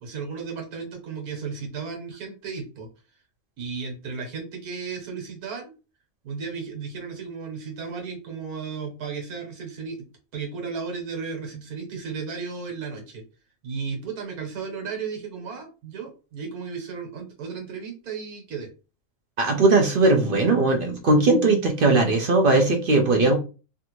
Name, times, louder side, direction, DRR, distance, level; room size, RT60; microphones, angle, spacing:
voice 1, 0.0-2.9 3.6-5.7 6.2-10.1 10.3-13.2 13.6-18.7, right 5 dB, 85° right, 2 dB, 1.6 m, -34 dB
voice 2, 19.4-23.4, right 2 dB, 60° right, 3 dB, 0.6 m, -19 dB
3.4 x 2.5 x 3.0 m, 0.33 s
omnidirectional pair, 1.6 m